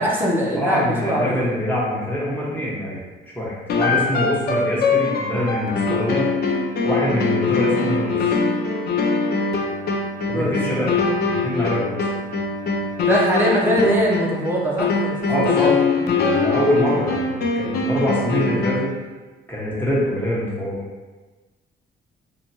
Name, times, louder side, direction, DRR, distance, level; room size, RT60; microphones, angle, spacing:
voice 1, 0.0-1.4 10.3-10.5 13.0-15.1 15.4-15.8, equal, 10° right, -4 dB, 0.6 m, -21 dB
voice 2, 0.5-3.0 3.3-6.3 6.8-8.3 10.3-12.1 15.3-15.8 16.1-18.9 19.5-20.8, left 1 dB, 10° left, -7 dB, 1.0 m, -24 dB
sound 1, 3.7-19.0, left 4 dB, 55° left, 0.4 m, -22 dB
2.9 x 2.3 x 2.7 m, 1.3 s
cardioid pair, 90°, 20 cm